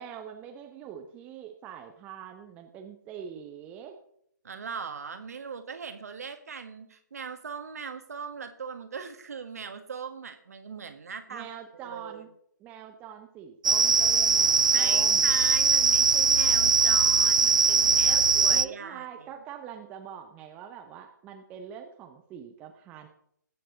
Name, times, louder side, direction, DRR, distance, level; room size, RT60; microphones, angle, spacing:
voice 1, 0.0-4.0 11.3-12.3 12.6-15.3 18.1-23.1, right 8 dB, 15° right, 4 dB, 0.8 m, -44 dB
voice 2, 4.4-11.5 11.8-12.2 14.7-19.3, right 6 dB, 50° right, 8 dB, 1.6 m, -40 dB
sound 1, 13.6-18.7, right 4 dB, 75° right, 0.4 m, -21 dB
20.5 x 7.7 x 3.9 m, 0.71 s
figure-of-eight pair, 140°, 11 cm